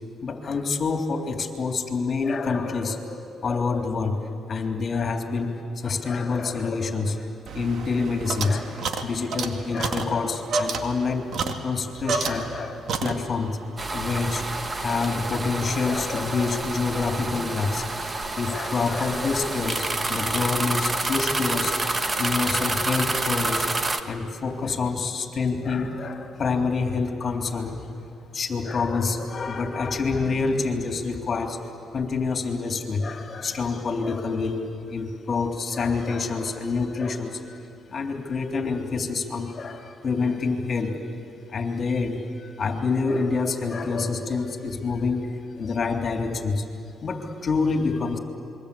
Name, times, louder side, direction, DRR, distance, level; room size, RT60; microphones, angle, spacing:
voice 1, 0.2-4.2 4.5-7.3 7.5-11.3 11.6-13.6 13.9-14.5 14.8-21.7 22.2-23.8 24.1-27.9 28.3-31.6 31.9-34.6 34.9-37.6 37.9-40.9 41.5-46.7 47.0-48.2, left 4 dB, 45° left, 3 dB, 3.4 m, -27 dB
sound 1, 7.5-12.6 12.9-13.6, right 4 dB, 65° right, 2.0 m, -30 dB
sound 2, 13.8-24.0, right 2 dB, 25° right, 1.5 m, -28 dB
27.5 x 23.0 x 8.7 m, 2.6 s
cardioid pair, 90°, 0 cm